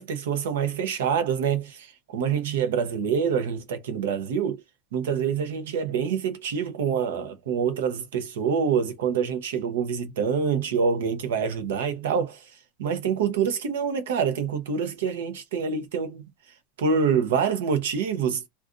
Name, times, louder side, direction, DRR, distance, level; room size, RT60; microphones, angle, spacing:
voice 1, 0.0-4.6 4.9-12.4 12.8-16.2 16.8-18.4, right 6 dB, 85° right, 0.8 m, -26 dB
2.5 x 2.4 x 3.7 m
supercardioid pair, 155°, 0 cm